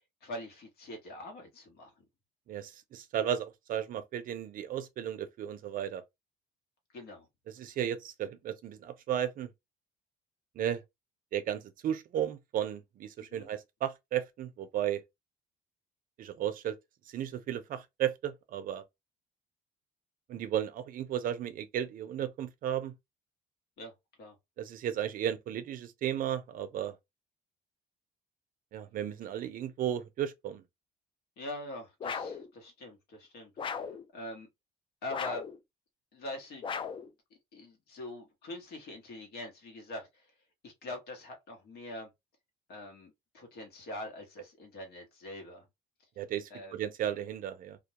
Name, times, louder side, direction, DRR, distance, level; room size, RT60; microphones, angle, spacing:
voice 1, 0.0-2.1 6.9-7.3 13.2-13.5 23.8-23.9 24.2-24.3 31.4-34.5 35.0-35.4 36.1-36.7 37.5-40.3 40.6-42.1 42.7-45.6 46.5-46.8, left 1 dB, 70° left, 1.1 m, -44 dB
voice 2, 2.5-6.0 7.5-9.5 10.6-10.8 11.3-15.0 16.2-16.8 17.1-18.8 20.3-22.9 24.6-27.0 28.7-30.6 46.2-47.8, right 10 dB, 55° right, 0.5 m, -34 dB
sound 1, 32.0-32.5 33.6-34.0 35.1-35.6 36.6-37.1, left 6 dB, 30° left, 0.4 m, -36 dB
2.3 x 2.2 x 2.8 m
cardioid pair, 110°, 17 cm